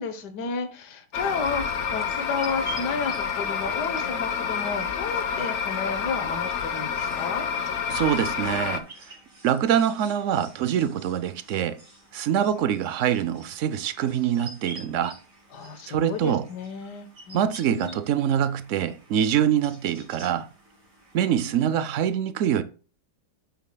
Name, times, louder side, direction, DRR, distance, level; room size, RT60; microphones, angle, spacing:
voice 1, 0.0-7.5 15.5-18.0, left 4 dB, 70° left, 1.6 m, -32 dB
sound 1, 1.1-8.8, left 6 dB, 55° left, 0.8 m, -28 dB
sound 2, 1.9-21.8, right 3 dB, 30° right, 2.4 m, -48 dB
voice 2, 7.9-8.9 9.4-11.8 12.1-15.2 15.9-16.5 17.3-20.5 21.1-22.6, right 9 dB, 70° right, 0.7 m, -24 dB
8.8 x 7.3 x 2.2 m
omnidirectional pair, 1.8 m